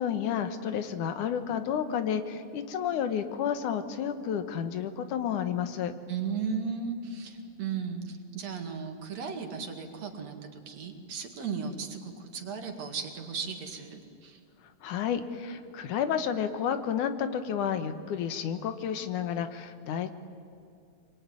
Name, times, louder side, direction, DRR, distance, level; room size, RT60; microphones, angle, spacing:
voice 1, 0.0-5.9 14.8-20.1, left 8 dB, 85° left, 9 dB, 2.8 m, -31 dB
voice 2, 6.1-14.4, right 5 dB, 60° right, 4 dB, 3.3 m, -36 dB
25.0 x 23.0 x 9.8 m, 2.5 s
omnidirectional pair, 3.5 m